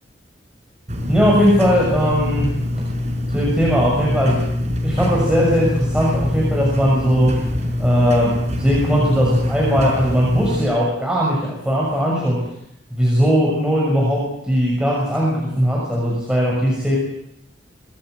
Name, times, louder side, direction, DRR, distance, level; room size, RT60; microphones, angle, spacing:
sound 1, 0.9-10.6, left 1 dB, 40° right, 5.5 m, -24 dB
voice 1, 1.1-2.6 3.3-4.5 4.8-7.5 7.8-12.5 12.9-17.0, equal, 5° right, -4 dB, 6.3 m, -18 dB
25.0 x 20.5 x 8.1 m, 0.79 s
head